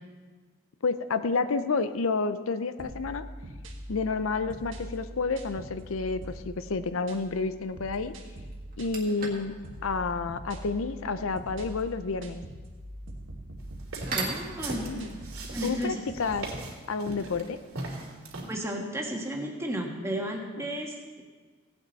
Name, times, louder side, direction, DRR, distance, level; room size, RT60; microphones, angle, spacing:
voice 1, 0.8-3.2 3.9-8.1 8.8-9.5 9.8-12.4 14.8-15.2 15.6-16.5 16.9-17.6 20.6-20.7, left 4 dB, 90° left, 11 dB, 0.6 m, -30 dB
sound 1, 2.8-16.5, right 1 dB, 70° right, 1.5 m, -43 dB
sound 2, 7.9-8.0 8.5-17.2, right 3 dB, 45° right, 1.8 m, -42 dB
sound 3, 13.8-18.5, right 2 dB, 90° right, 2.9 m, -38 dB
voice 2, 14.1-15.0 15.5-16.0 18.5-21.2, equal, 15° right, 0 dB, 1.4 m, -33 dB
17.0 x 8.9 x 4.1 m, 1.4 s
head